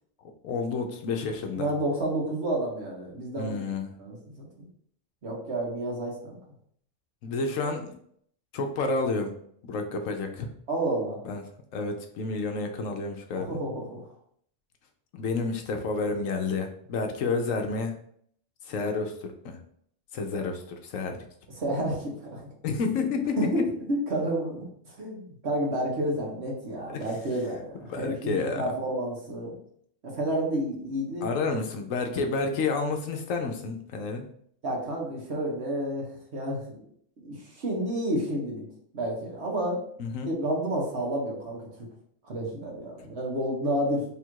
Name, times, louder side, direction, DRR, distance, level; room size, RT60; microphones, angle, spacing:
voice 1, 0.4-1.7 3.4-3.9 7.2-8.0 8.5-9.3 9.7-10.5 11.2-11.4 11.7-13.5 15.1-17.9 18.7-19.6 20.1-21.2 22.6-23.4 26.9-27.0 27.9-28.7 31.2-34.3 40.0-40.3 43.0-43.1, left 4 dB, 85° left, 5 dB, 1.1 m, -30 dB
voice 2, 1.5-3.7 4.0-4.5 5.2-6.4 7.6-7.7 10.7-11.2 13.3-14.0 21.6-22.4 23.4-23.6 23.9-29.6 30.0-31.3 34.6-36.6 37.2-38.6 38.9-39.8 40.2-41.7 42.2-44.0, right 1 dB, 55° right, -2 dB, 1.4 m, -30 dB
3.4 x 2.5 x 4.5 m, 0.64 s
omnidirectional pair, 1.3 m